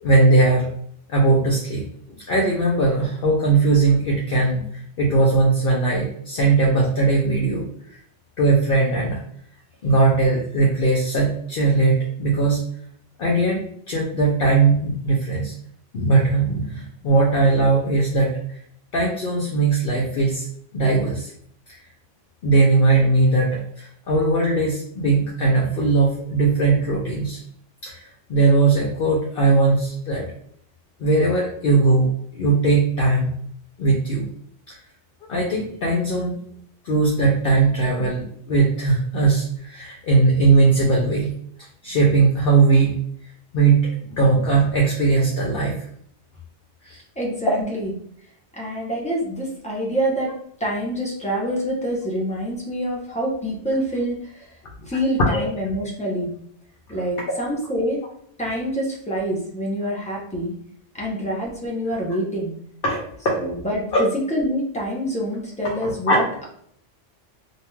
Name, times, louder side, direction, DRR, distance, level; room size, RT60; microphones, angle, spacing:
voice 1, 0.0-0.7 1.1-1.8 2.3-4.7 5.0-7.6 8.4-9.2 9.8-12.6 13.2-15.5 15.9-18.6 18.9-20.5 20.7-21.3 22.4-23.5 23.8-27.4 27.8-30.3 31.0-32.1 32.3-33.3 33.8-34.2 34.7-34.8 35.3-36.4 36.8-41.3 41.8-43.0 43.5-45.7 46.8-47.0 55.3-55.4 62.8-63.0 63.2-63.4 63.9-64.1 65.8-66.2, right 3 dB, 60° left, -2 dB, 0.7 m, -19 dB
voice 2, 47.2-47.9 48.5-50.3 50.6-54.5 54.9-56.3 56.9-58.0 58.4-60.5 60.9-62.5 63.4-66.4, equal, 10° left, -3 dB, 0.4 m, -26 dB
2.7 x 2.2 x 3.1 m, 0.66 s
omnidirectional pair, 1.3 m